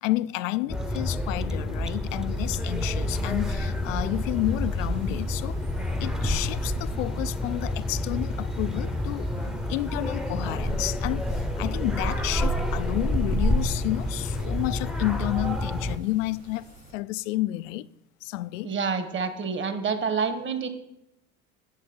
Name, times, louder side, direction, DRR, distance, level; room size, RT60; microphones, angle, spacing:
voice 1, 0.0-5.6 6.0-17.9 18.2-18.7, left 18 dB, 70° left, 0.5 m, -30 dB
sound 1, 0.7-16.0, left 1 dB, ahead, 0.8 m, -28 dB
sound 2, 2.7-16.9, right 2 dB, 80° right, 3.5 m, -52 dB
voice 2, 18.6-20.7, right 5 dB, 30° right, 1.4 m, -28 dB
11.5 x 7.7 x 4.5 m
hypercardioid pair, 75°, 40 cm